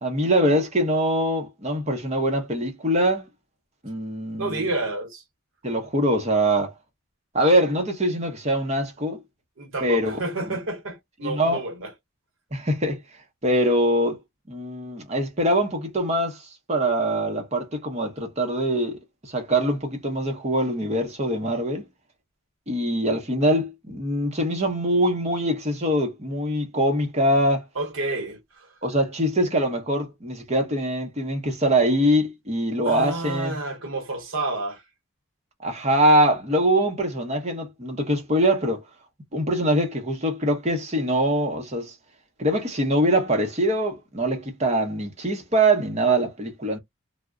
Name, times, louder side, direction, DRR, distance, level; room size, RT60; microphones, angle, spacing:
voice 1, 0.0-3.3 3.8-4.6 5.6-6.7 7.3-9.2 9.8-10.2 11.2-11.6 12.5-13.0 13.4-14.2 14.5-21.9 22.7-27.6 28.8-33.6 35.6-38.8 39.3-41.9 42.4-46.8, right 1 dB, 30° right, 0.8 m, -23 dB
voice 2, 4.4-5.2 9.6-11.9 27.8-28.7 32.8-34.8, right 2 dB, 70° right, 0.9 m, -30 dB
2.2 x 2.1 x 3.6 m
head